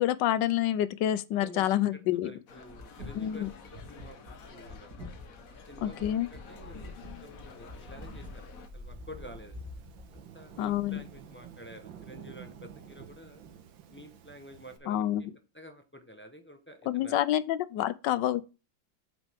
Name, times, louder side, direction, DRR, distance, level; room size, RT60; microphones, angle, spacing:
voice 1, 0.0-2.3 3.2-3.5 5.8-6.3 7.0-7.2 10.6-11.0 14.9-15.3 16.9-18.4, left 12 dB, 75° left, 1.3 m, -28 dB
voice 2, 1.3-4.2 4.5-4.9 5.5-9.6 10.1-13.4 13.9-15.3 15.5-17.2 17.8-17.9, equal, 10° left, 0.6 m, -50 dB
sound 1, 2.5-8.7, left 5 dB, 50° left, 1.4 m, -51 dB
sound 2, 2.5-11.4 12.9-13.1 13.4-13.5, left 1 dB, 60° right, 2.4 m, -46 dB
Thunderstorm / Rain, 7.1-14.8, right 9 dB, 90° right, 1.8 m, -51 dB
8.3 x 6.1 x 3.5 m
omnidirectional pair, 2.0 m